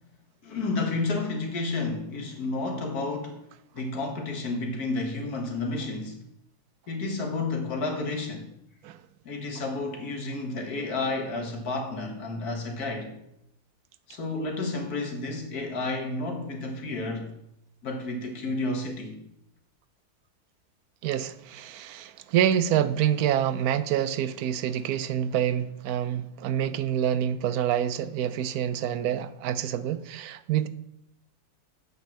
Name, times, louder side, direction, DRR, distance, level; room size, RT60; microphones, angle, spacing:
voice 1, 0.4-3.5 3.7-6.2 6.9-8.5 9.2-13.1 14.1-17.3 17.8-19.2, left 3 dB, 80° left, 3 dB, 2.1 m, -31 dB
voice 2, 21.0-30.7, right 10 dB, 80° right, 14 dB, 1.1 m, -27 dB
8.1 x 5.4 x 7.2 m, 0.81 s
omnidirectional pair, 1.6 m